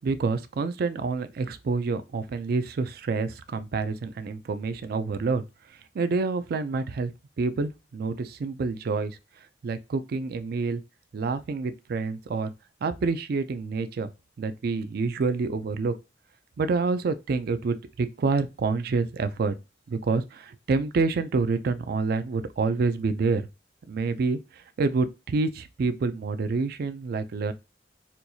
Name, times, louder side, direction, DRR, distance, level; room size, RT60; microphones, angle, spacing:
voice 1, 0.0-5.4 5.9-7.1 7.4-9.2 9.6-10.8 11.1-12.5 12.8-14.1 14.4-15.9 16.6-19.6 19.9-23.5 23.9-27.5, right 4 dB, 60° right, 0.4 m, -27 dB
4.4 x 2.3 x 2.7 m
head